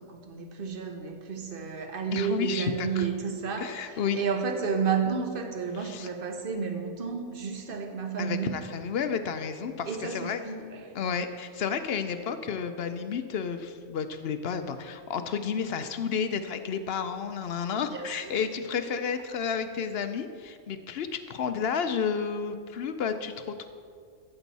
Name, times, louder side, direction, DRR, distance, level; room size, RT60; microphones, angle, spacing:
voice 1, 0.0-8.6 9.9-10.9 17.7-18.3, right 6 dB, 45° right, 5 dB, 1.0 m, -31 dB
voice 2, 2.1-3.0 3.6-4.2 5.8-6.1 8.2-10.4 10.9-23.7, left 6 dB, 60° left, 9 dB, 0.6 m, -31 dB
13.5 x 7.9 x 4.1 m, 2.2 s
omnidirectional pair, 1.5 m